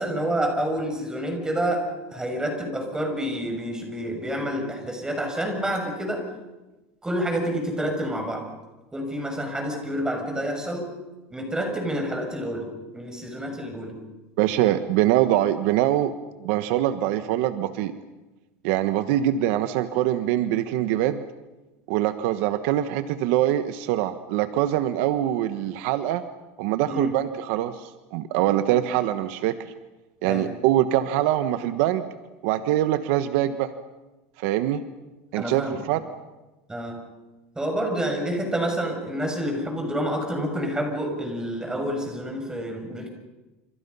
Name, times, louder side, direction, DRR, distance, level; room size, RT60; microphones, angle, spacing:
voice 1, 0.0-6.2 7.0-8.5 8.9-10.9 11.3-13.9 26.9-27.2 30.3-30.6 35.4-35.8 36.7-37.0 37.5-43.1, equal, 10° right, 3 dB, 6.9 m, -28 dB
voice 2, 14.4-16.1 16.4-17.9 18.6-21.2 21.9-26.2 26.6-29.6 30.2-32.1 32.4-33.7 34.4-34.8 35.3-36.0, right 13 dB, 70° right, 10 dB, 1.3 m, -23 dB
28.5 x 28.0 x 5.7 m, 1.1 s
supercardioid pair, 130°, 8 cm